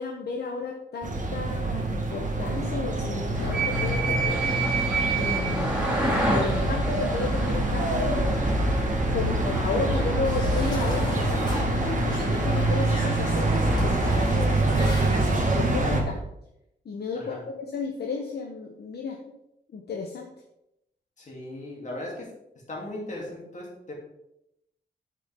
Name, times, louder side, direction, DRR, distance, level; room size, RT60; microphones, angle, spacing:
voice 1, 0.0-4.5 5.2-8.3 9.1-16.2 16.8-19.2 19.7-20.3, left 5 dB, 60° left, 2 dB, 1.0 m, -33 dB
sound 1, 1.0-16.0, right 2 dB, 45° right, 1.5 m, -26 dB
sound 2, 3.3-14.2, right 2 dB, 5° right, 2.8 m, -30 dB
sound 3, 10.2-16.0, left 1 dB, 25° left, 2.4 m, -38 dB
voice 2, 17.1-17.4 21.2-22.3 22.7-23.9, left 1 dB, 40° left, -3 dB, 3.0 m, -37 dB
9.8 x 6.2 x 3.7 m, 0.82 s
wide cardioid pair, 130°, 19 cm